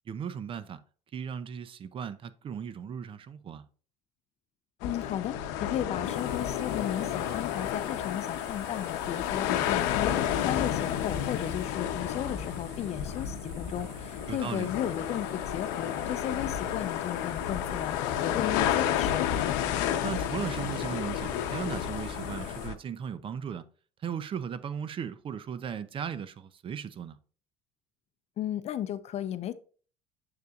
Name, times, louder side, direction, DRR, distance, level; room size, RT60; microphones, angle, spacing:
voice 1, 0.1-0.8 1.1-3.6 14.3-14.7 20.0-23.6 24.0-27.2, right 7 dB, 40° right, 0.6 m, -37 dB
sound 1, 4.8-22.7, left 10 dB, 85° left, 0.7 m, -31 dB
voice 2, 4.8-19.3 28.4-29.5, left 10 dB, 50° left, 0.6 m, -35 dB
sound 2, 6.0-22.7, right 5 dB, 80° right, 1.8 m, -51 dB
6.7 x 6.6 x 2.4 m
supercardioid pair, 100°, 14 cm